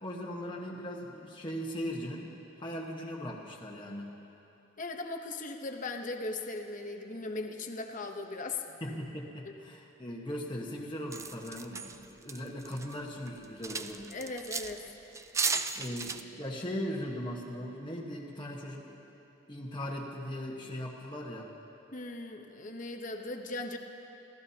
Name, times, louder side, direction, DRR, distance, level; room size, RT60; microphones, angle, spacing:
voice 1, 0.0-2.3 2.6-4.1 8.8-14.1 15.7-19.1 19.5-21.5, equal, 25° left, -3 dB, 1.3 m, -39 dB
voice 2, 4.8-8.8 9.4-9.6 14.1-14.9 21.9-23.8, left 2 dB, 40° left, 4 dB, 0.9 m, -38 dB
sound 1, 11.1-12.9 13.3-14.8 15.1-16.2, right 4 dB, 15° right, 0.3 m, -35 dB
28.0 x 16.0 x 2.9 m, 2.9 s
head